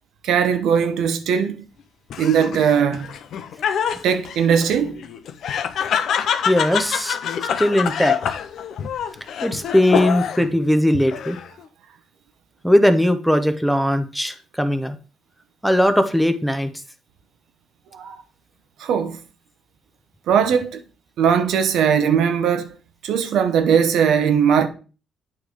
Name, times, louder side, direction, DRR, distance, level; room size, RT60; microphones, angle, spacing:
voice 1, 0.2-1.6 2.2-3.1 4.0-5.0 17.9-18.2 18.8-19.2 20.3-20.8 21.2-22.7 23.0-24.7, right 7 dB, 80° right, 0.8 m, -19 dB
Laughter, 2.1-10.5 10.9-11.6, left 8 dB, 70° left, 0.6 m, -26 dB
voice 2, 6.5-7.2 7.6-8.4 9.4-11.4 12.6-15.0 15.6-16.7, equal, ahead, 0.7 m, -19 dB
8.5 x 3.2 x 4.8 m
cardioid pair, 90°, 0 cm